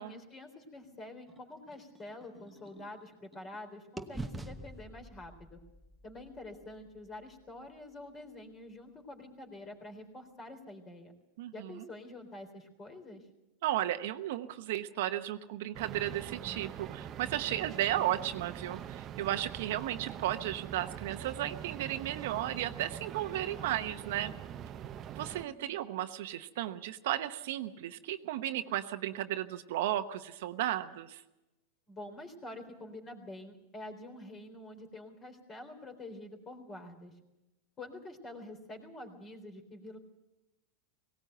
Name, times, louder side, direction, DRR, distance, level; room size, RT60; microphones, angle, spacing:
voice 1, 0.0-5.6 6.0-11.1 11.5-13.3 25.4-25.8 31.9-37.1 37.8-40.0, left 2 dB, 25° left, 5 dB, 3.8 m, -47 dB
sound 1, 1.3-3.6 4.0-7.9, right 2 dB, 5° right, 1.1 m, -47 dB
voice 2, 11.4-11.8 13.6-24.3 25.2-31.2, right 13 dB, 70° right, 9 dB, 1.0 m, -34 dB
sound 2, 15.7-25.4, right 9 dB, 35° right, 0.8 m, -43 dB
18.0 x 18.0 x 7.9 m, 1.0 s
hypercardioid pair, 120°, 0 cm